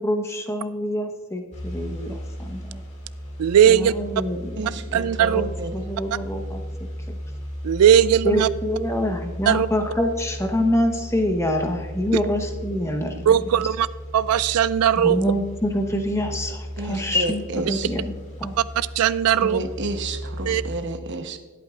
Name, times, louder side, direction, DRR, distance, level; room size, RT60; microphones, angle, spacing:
voice 1, 0.0-2.8 3.7-5.0 5.3-6.6 7.1-7.2 8.2-13.3 15.0-18.1 18.4-18.6, left 1 dB, 15° left, 4 dB, 1.0 m, -26 dB
sound 1, 1.5-20.8, equal, 35° left, 2.3 m, -35 dB
voice 2, 3.4-3.9 4.9-5.4 7.6-8.5 9.5-9.7 12.1-12.2 13.3-13.9 14.1-15.2 18.8-19.6 20.5-20.6, right 9 dB, 85° right, 16 dB, 0.3 m, -18 dB
voice 3, 4.6-5.8 16.8-17.9 19.4-21.4, right 2 dB, 55° right, 7 dB, 1.0 m, -31 dB
20.0 x 8.5 x 2.5 m, 1.4 s
head